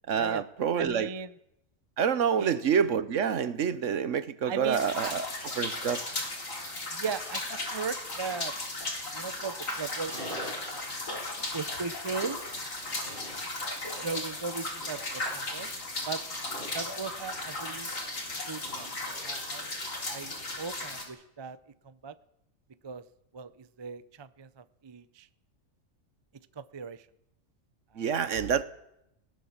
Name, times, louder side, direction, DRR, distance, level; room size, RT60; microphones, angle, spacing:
voice 1, 0.1-1.1 2.0-5.2 5.6-6.0 28.0-28.6, right 7 dB, 65° right, 15 dB, 1.3 m, -27 dB
voice 2, 0.8-1.3 2.4-2.6 4.4-5.1 6.9-8.6 9.1-10.4 11.5-12.4 14.0-15.7 16.1-16.2 16.7-17.9 18.5-18.9 19.2-19.8 20.1-21.6 21.8-22.2 22.8-23.1 23.3-25.3 26.6-27.1 27.9-28.5, right 5 dB, 30° right, 15 dB, 0.5 m, -38 dB
sound 1, 4.7-21.0, left 2 dB, 75° left, 3.9 m, -36 dB
Livestock farm animals working animals, 9.7-21.0, equal, 45° right, 6.7 m, -48 dB
19.5 x 18.5 x 7.3 m, 0.80 s
omnidirectional pair, 1.4 m